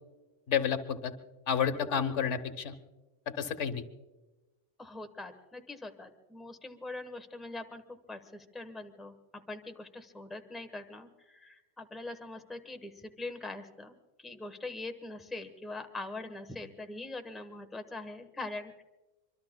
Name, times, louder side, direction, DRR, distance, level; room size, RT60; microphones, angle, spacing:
voice 1, 0.5-1.1 1.5-2.7 3.3-3.8, left 7 dB, 80° left, 10 dB, 1.4 m, -30 dB
voice 2, 4.8-18.8, left 2 dB, ahead, 6 dB, 0.9 m, -43 dB
25.5 x 23.5 x 2.2 m, 1.1 s
omnidirectional pair, 1.2 m